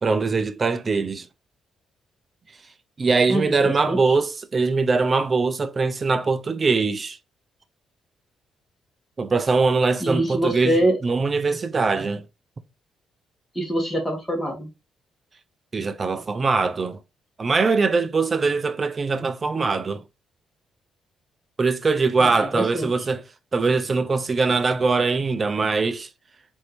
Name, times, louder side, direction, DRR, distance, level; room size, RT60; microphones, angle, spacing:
voice 1, 0.0-1.3 3.0-7.2 9.2-12.2 15.7-17.0 17.4-20.0 21.6-23.2 23.5-26.1, right 4 dB, 35° right, 0.5 m, -22 dB
voice 2, 3.3-4.2 10.0-11.0 13.5-14.7 22.2-22.9, right 1 dB, 10° left, 1.5 m, -24 dB
4.2 x 2.7 x 3.1 m
cardioid pair, 90°, 0 cm